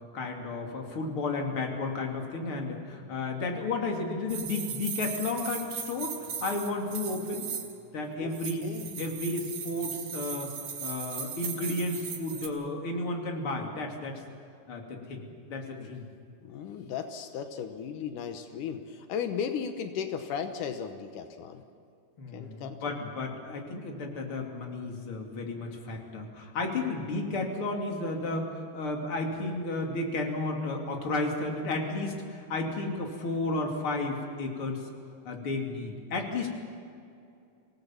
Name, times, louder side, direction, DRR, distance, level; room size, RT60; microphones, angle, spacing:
voice 1, 0.1-6.1 6.4-7.5 7.9-8.7 9.0-10.5 10.8-14.2 14.7-15.2 15.5-16.1 22.2-34.8 35.3-36.5, left 2 dB, 45° left, 1 dB, 3.4 m, -33 dB
sound 1, 4.3-7.8 8.3-12.5, right 7 dB, 85° right, 3.8 m, -38 dB
voice 2, 8.6-9.2 15.7-15.9 16.4-21.6 22.3-22.9, left 7 dB, 85° left, 7 dB, 2.6 m, -36 dB
26.0 x 18.0 x 7.3 m, 2.5 s
omnidirectional pair, 3.6 m